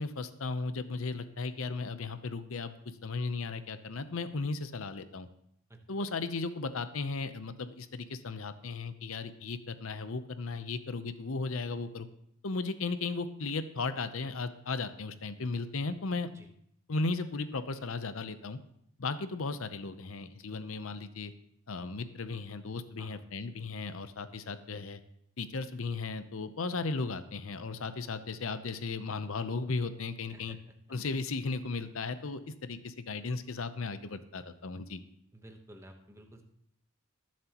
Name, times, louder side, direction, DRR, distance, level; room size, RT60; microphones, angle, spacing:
voice 1, 0.0-2.7 3.0-5.3 5.9-12.1 12.4-16.3 16.9-18.6 19.0-21.3 21.7-25.0 25.4-30.6 30.9-35.0, left 3 dB, 70° left, 11 dB, 0.7 m, -36 dB
voice 2, 30.3-30.6 35.3-36.4, right 1 dB, 15° right, 4 dB, 1.1 m, -52 dB
19.5 x 7.5 x 3.0 m, 0.71 s
head